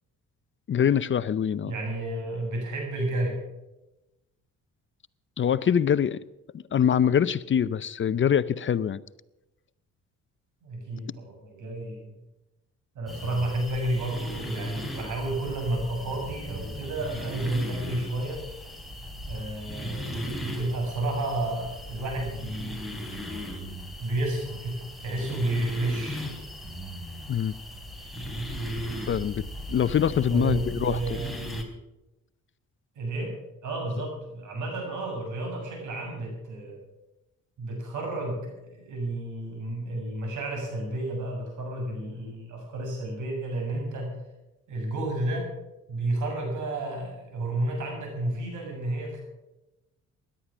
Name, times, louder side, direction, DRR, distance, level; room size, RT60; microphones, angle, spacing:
voice 1, 0.7-1.7 5.4-6.2 6.5-9.0 27.3-27.5 29.1-29.4 29.7-31.2, left 8 dB, 40° left, 17 dB, 0.6 m, -24 dB
voice 2, 1.6-3.4 10.6-12.1 13.0-18.4 19.3-23.2 24.0-26.2 30.3-31.4 33.0-33.3 33.6-36.8 37.6-44.1 44.7-45.5 45.9-49.2, right 1 dB, 80° right, 2 dB, 7.2 m, -31 dB
sound 1, 13.1-31.6, equal, ahead, 3.4 m, -37 dB
17.0 x 11.5 x 6.2 m, 0.98 s
cardioid pair, 90°, 30 cm